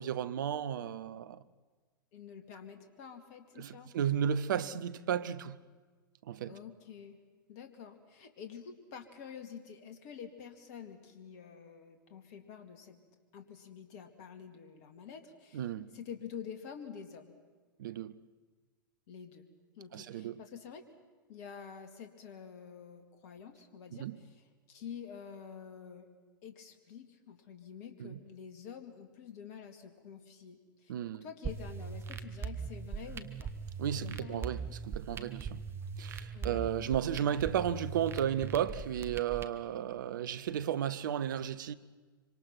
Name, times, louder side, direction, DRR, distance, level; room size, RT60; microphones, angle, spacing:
voice 1, 0.0-1.4 3.6-5.6 6.2-6.6 15.5-15.9 17.8-18.2 19.9-20.4 23.9-24.2 28.0-28.2 30.9-31.2 33.8-35.6 36.0-41.7, right 9 dB, 65° right, 0.9 m, -34 dB
voice 2, 2.1-3.9 6.5-7.2 7.5-13.0 13.3-15.7 15.9-17.3 19.1-19.5 19.8-20.9 21.3-24.4 24.7-26.1 26.4-33.5 33.9-34.7 36.3-36.7, left 7 dB, 50° left, 2.4 m, -48 dB
sound 1, 31.4-39.4, right 5 dB, 20° right, 1.5 m, -41 dB
25.5 x 25.5 x 6.0 m
figure-of-eight pair, 95°, 11 cm